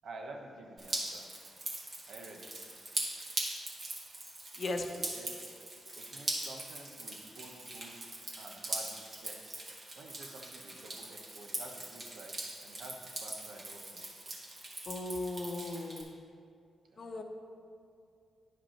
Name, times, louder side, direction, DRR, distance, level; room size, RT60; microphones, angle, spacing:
voice 1, 0.0-1.3 2.1-2.5 5.1-5.3 5.9-8.0 8.4-9.7 10.0-12.4 12.6-14.1 16.9-17.2, right 2 dB, 70° right, 2 dB, 1.0 m, -50 dB
Drip, 0.8-16.0, right 2 dB, 50° right, 1.9 m, -41 dB
voice 2, 4.6-5.1 14.8-16.1 17.0-17.2, left 2 dB, 50° left, 4 dB, 0.8 m, -37 dB
10.0 x 5.2 x 4.4 m, 2.3 s
cardioid pair, 60°, 0 cm